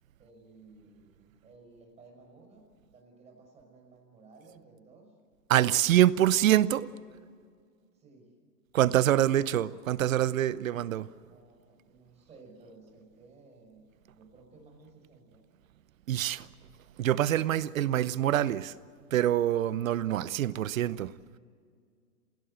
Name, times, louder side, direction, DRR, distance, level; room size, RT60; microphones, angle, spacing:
voice 1, 0.2-5.1 8.0-8.3 11.1-15.4, right 3 dB, 15° right, 5.7 m, -56 dB
voice 2, 5.5-6.9 8.7-11.1 16.1-16.5 17.0-18.7 19.1-21.1, right 12 dB, 55° right, 0.9 m, -25 dB
28.0 x 17.0 x 8.1 m
hypercardioid pair, 145°, 48 cm